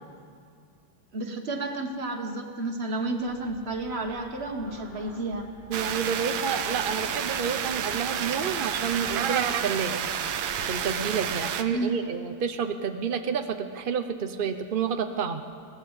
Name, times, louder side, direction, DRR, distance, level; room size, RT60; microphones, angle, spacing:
voice 1, 1.1-5.5 11.7-12.0, right 2 dB, 35° right, 4 dB, 1.7 m, -31 dB
sound 1, 3.2-11.2, equal, 45° left, 7.7 m, -51 dB
voice 2, 5.7-10.0 10.7-15.4, right 6 dB, 70° right, 7 dB, 0.5 m, -29 dB
sound 2, 5.7-11.6, right 8 dB, 85° right, 1.7 m, -30 dB
21.5 x 18.0 x 7.4 m, 2.3 s
omnidirectional pair, 2.2 m